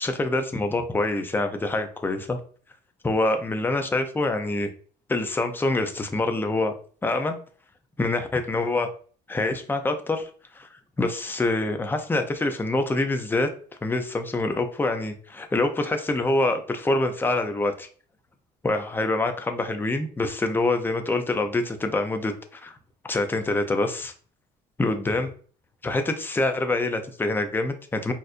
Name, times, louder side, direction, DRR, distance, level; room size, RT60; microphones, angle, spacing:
voice 1, 0.0-2.4 3.0-4.7 5.1-6.7 7.0-7.4 8.0-8.9 9.3-10.3 10.5-10.7 11.0-13.5 13.8-17.9 18.6-22.8 23.0-24.1 24.8-25.3 25.8-28.1, left 2 dB, 10° left, 6 dB, 0.5 m, -25 dB
4.1 x 2.5 x 2.5 m, 0.43 s
cardioid pair, 110°, 17 cm